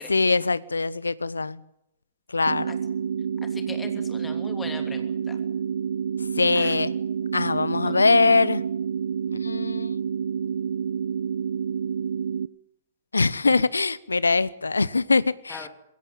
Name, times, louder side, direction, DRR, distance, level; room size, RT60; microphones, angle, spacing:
voice 1, 0.1-1.6 2.3-2.7 6.4-6.9 7.3-8.6 9.3-9.9 13.1-15.7, left 3 dB, 80° left, 1.0 m, -22 dB
sound 1, 2.5-12.5, right 7 dB, 65° right, 0.9 m, -28 dB
voice 2, 3.5-5.4 6.5-6.7 7.8-8.0 13.4-13.6 15.5-15.7, left 4 dB, 15° left, 3.1 m, -40 dB
21.5 x 17.0 x 9.1 m
figure-of-eight pair, 115°, 0 cm